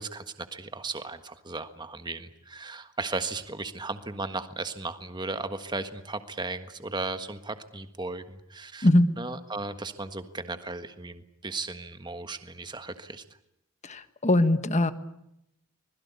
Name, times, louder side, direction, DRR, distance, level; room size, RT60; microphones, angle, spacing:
voice 1, 0.0-8.9 9.2-13.2, right 3 dB, 20° right, 9 dB, 1.5 m, -36 dB
voice 2, 13.8-14.9, left 1 dB, 35° left, 11 dB, 1.5 m, -21 dB
25.5 x 21.0 x 8.4 m, 0.80 s
head